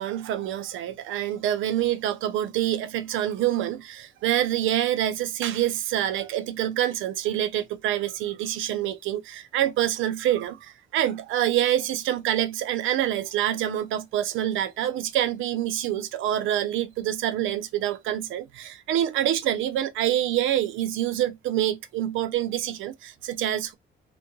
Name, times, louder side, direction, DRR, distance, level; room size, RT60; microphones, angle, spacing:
voice 1, 0.0-23.7, right 12 dB, 85° right, 0.4 m, -26 dB
2.2 x 2.1 x 2.9 m
cardioid pair, 90°, 20 cm